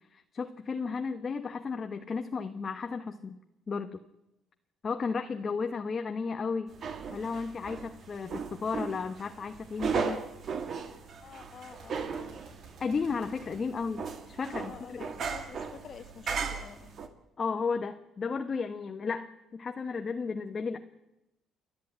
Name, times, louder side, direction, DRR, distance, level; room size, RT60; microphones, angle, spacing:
voice 1, 0.1-3.4 3.7-4.0 4.8-6.7 7.1-10.2 12.8-15.1 17.4-20.8, left 5 dB, 35° left, 6 dB, 1.1 m, -34 dB
sound 1, 6.7-17.1, right 5 dB, 50° right, 2.1 m, -37 dB
voice 2, 11.2-12.4 14.5-16.9, left 7 dB, 50° left, 7 dB, 1.8 m, -49 dB
Gunshot gunfire, 11.7-14.8, right 3 dB, 65° right, 4.8 m, -55 dB
29.5 x 11.0 x 8.9 m, 0.97 s
cardioid pair, 115°, 0 cm